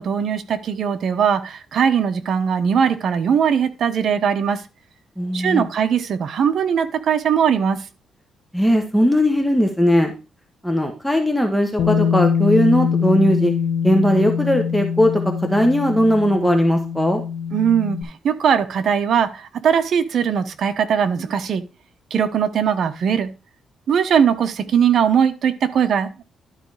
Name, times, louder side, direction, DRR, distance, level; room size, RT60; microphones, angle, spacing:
voice 1, 0.0-4.6 5.3-7.8 17.5-21.7 22.1-23.3 23.9-26.2, right 7 dB, 60° right, 9 dB, 1.0 m, -20 dB
voice 2, 5.2-5.7 8.5-10.1 10.6-13.5 13.8-17.2, equal, 5° left, 3 dB, 1.2 m, -18 dB
Bass guitar, 11.8-18.0, left 7 dB, 85° left, 1.6 m, -23 dB
12.0 x 4.0 x 4.9 m, 0.31 s
cardioid pair, 120°, 0 cm